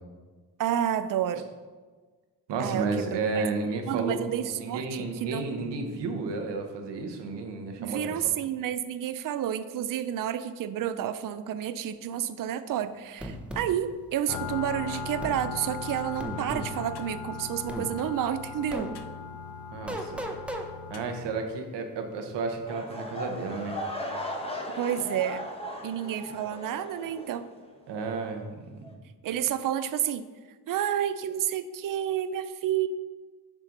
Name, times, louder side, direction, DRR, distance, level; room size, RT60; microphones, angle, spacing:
voice 1, 0.6-1.4 2.6-3.4 3.9-5.5 7.8-18.9 24.7-25.5 25.8-27.5 29.2-30.3 30.7-32.9, right 10 dB, 55° right, 12 dB, 0.5 m, -30 dB
voice 2, 2.5-8.1 19.7-20.3 20.9-23.8 27.9-28.5, right 4 dB, 80° right, 5 dB, 1.1 m, -32 dB
sound 1, 13.2-13.7 15.2-15.4 16.2-16.7 17.7-17.9 18.7-18.9 19.9-20.7, right 1 dB, 5° right, 0.8 m, -35 dB
sound 2, 14.3-21.2, left 5 dB, 70° left, 0.7 m, -38 dB
sound 3, 22.7-27.7 28.0-28.3 28.8-28.9, equal, 15° left, 1.2 m, -37 dB
7.4 x 5.0 x 3.9 m, 1.4 s
cardioid pair, 75°, 41 cm